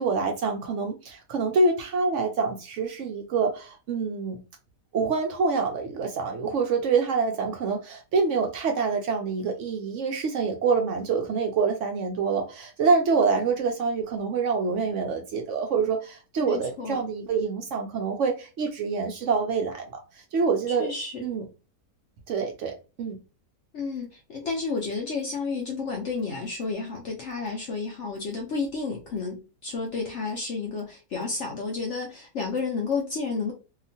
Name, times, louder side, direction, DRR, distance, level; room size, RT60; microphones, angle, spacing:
voice 1, 0.0-4.4 4.9-19.8 20.3-20.9 21.2-21.4 22.3-23.2, right 4 dB, 70° right, 0.7 m, -26 dB
voice 2, 16.4-17.0 20.7-21.2 23.7-33.5, left 4 dB, 65° left, 0.7 m, -31 dB
2.8 x 2.4 x 2.6 m
omnidirectional pair, 1.8 m